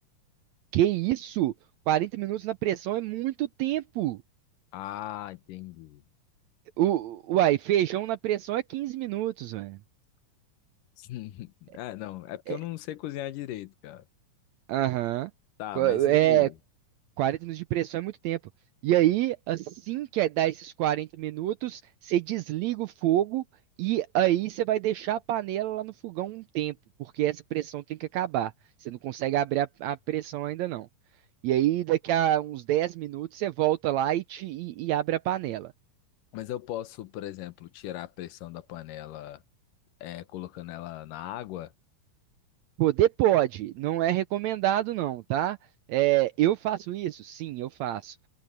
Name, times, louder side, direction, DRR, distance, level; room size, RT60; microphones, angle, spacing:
voice 1, 0.7-1.5 1.9-4.2 6.8-9.8 12.5-12.6 14.7-15.3 15.8-16.5 17.2-18.4 18.8-23.4 23.8-26.7 27.0-28.5 28.8-30.9 31.4-35.7 42.8-45.6 45.9-48.2, right 13 dB, 80° right, 1.6 m, -27 dB
voice 2, 4.7-6.0 11.0-14.0 15.6-16.5 36.3-39.4 40.0-41.7, left 13 dB, 85° left, 2.6 m, -38 dB
omnidirectional pair, 3.7 m